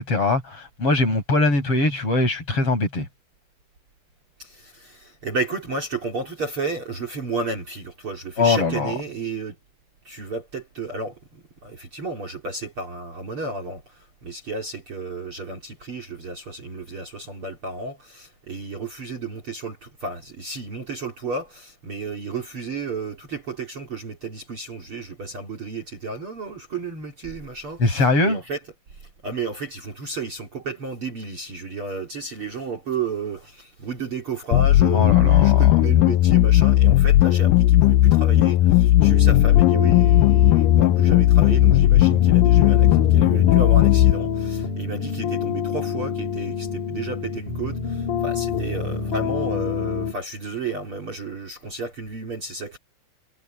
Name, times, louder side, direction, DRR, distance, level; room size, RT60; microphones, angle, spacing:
voice 1, 0.0-3.1 8.4-8.9 27.8-28.4 34.9-35.7, left 3 dB, 35° left, 6.3 m, -21 dB
voice 2, 4.4-9.6 10.0-28.6 28.9-52.8, right 4 dB, 35° right, 3.2 m, -32 dB
sound 1, 34.5-44.1, left 15 dB, 85° left, 2.0 m, -16 dB
sound 2, 39.0-50.2, left 6 dB, 55° left, 4.2 m, -27 dB
omnidirectional pair, 4.5 m